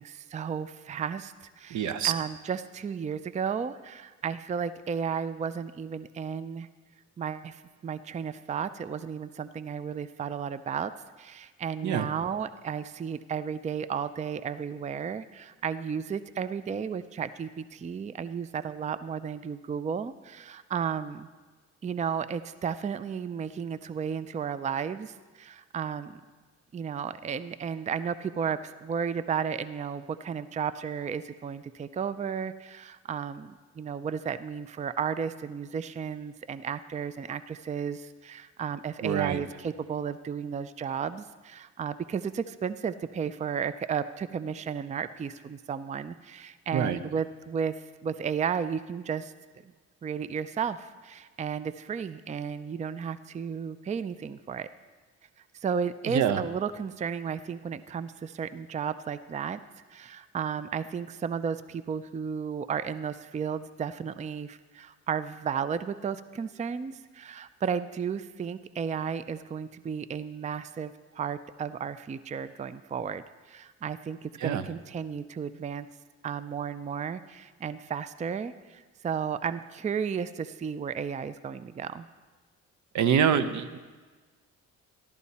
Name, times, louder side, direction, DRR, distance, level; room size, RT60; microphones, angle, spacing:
voice 1, 0.0-6.7 7.2-10.9 11.2-21.3 21.8-26.2 26.7-49.3 50.0-54.7 55.6-59.6 59.9-75.9 76.2-82.1, right 7 dB, 25° right, 14 dB, 0.4 m, -33 dB
voice 2, 1.7-2.1 11.8-12.1 39.0-39.4 46.7-47.0 56.1-56.4 74.4-74.6 82.9-83.8, right 8 dB, 70° right, 13 dB, 0.8 m, -25 dB
14.0 x 12.0 x 4.2 m, 1.4 s
cardioid pair, 90°, 30 cm